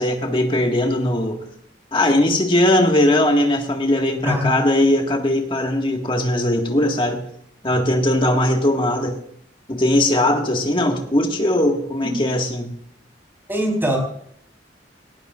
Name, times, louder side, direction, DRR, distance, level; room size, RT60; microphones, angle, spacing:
voice 1, 0.0-1.4 1.9-7.2 7.6-9.2 9.7-12.7, left 1 dB, 30° left, 2 dB, 1.8 m, -19 dB
voice 2, 13.5-14.0, equal, 10° right, 0 dB, 4.1 m, -22 dB
18.5 x 17.5 x 2.5 m, 0.68 s
head